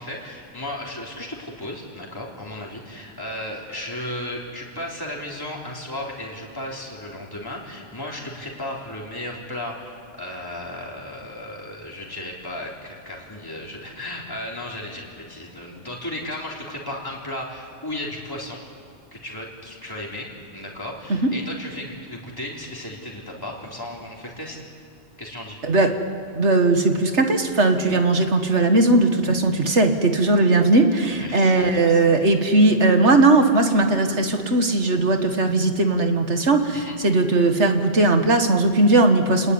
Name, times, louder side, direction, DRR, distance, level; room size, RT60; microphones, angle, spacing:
voice 1, 0.0-18.6 19.1-20.3 20.5-24.6 25.2-25.6 31.1-32.2 36.7-37.0, left 1 dB, 20° left, -3 dB, 3.7 m, -35 dB
voice 2, 25.6-25.9 26.3-39.5, right 2 dB, 80° right, 5 dB, 2.2 m, -18 dB
29.0 x 20.0 x 9.8 m, 2.2 s
omnidirectional pair, 1.2 m